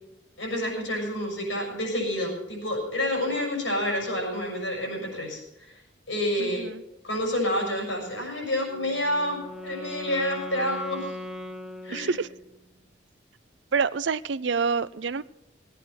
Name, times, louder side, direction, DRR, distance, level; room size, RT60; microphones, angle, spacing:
voice 1, 0.4-5.4 6.1-6.6 7.0-11.2 11.8-12.1, left 1 dB, 85° left, 0 dB, 6.2 m, -28 dB
voice 2, 6.4-6.8 11.9-12.3 13.7-15.2, right 5 dB, 70° right, 16 dB, 0.5 m, -27 dB
Wind instrument woodwind instrument, 8.7-12.6, left 1 dB, 5° right, 0.8 m, -39 dB
18.5 x 9.1 x 5.9 m, 0.91 s
head